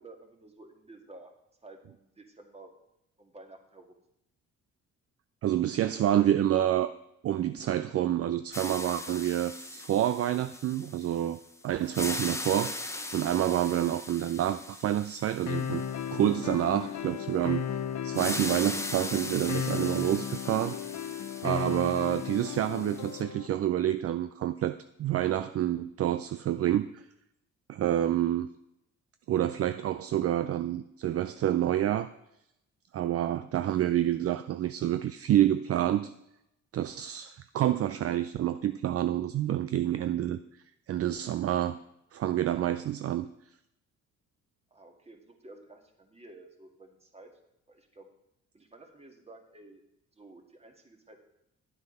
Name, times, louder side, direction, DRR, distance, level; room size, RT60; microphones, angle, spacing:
voice 1, 0.0-1.3 1.6-2.7 3.2-4.0 44.7-47.3 47.7-48.1 48.5-49.8 50.1-51.2, right 2 dB, 20° right, 1.9 m, -52 dB
voice 2, 5.4-6.9 7.2-11.4 11.6-12.7 13.1-15.8 16.1-17.7 18.0-20.8 21.4-27.0 27.7-28.5 29.3-32.1 32.9-36.1 36.7-40.4 40.9-41.8 42.1-43.3, right 12 dB, 50° right, 0.5 m, -28 dB
sound 1, 8.5-11.5 11.8-16.6 18.1-23.2, left 2 dB, 10° left, 0.9 m, -40 dB
sound 2, 15.5-23.5, left 9 dB, 65° left, 0.8 m, -35 dB
10.0 x 8.0 x 5.4 m
cardioid pair, 90°, 30 cm